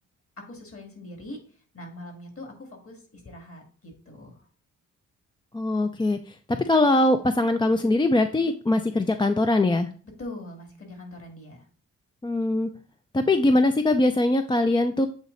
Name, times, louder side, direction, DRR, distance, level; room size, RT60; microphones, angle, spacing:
voice 1, 0.4-1.4 1.7-4.5 8.4-8.5 10.2-11.7, left 1 dB, 45° left, 3 dB, 2.4 m, -42 dB
voice 2, 5.5-9.9 12.2-12.7 13.1-15.1, left 2 dB, 15° left, 7 dB, 0.5 m, -22 dB
8.1 x 3.1 x 4.1 m, 0.40 s
cardioid pair, 65°, 32 cm